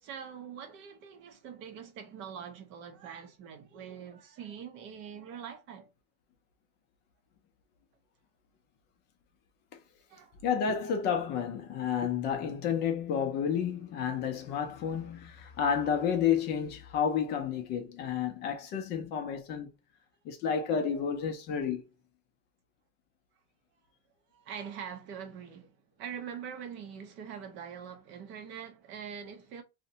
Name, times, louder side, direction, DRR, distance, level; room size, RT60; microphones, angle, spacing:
voice 1, 0.0-5.9 10.1-10.4 24.3-29.6, right 8 dB, 40° right, 0.5 m, -43 dB
voice 2, 10.4-19.7 20.2-21.8, left 7 dB, 35° left, 0.4 m, -30 dB
2.5 x 2.1 x 2.7 m
supercardioid pair, 145°, 30 cm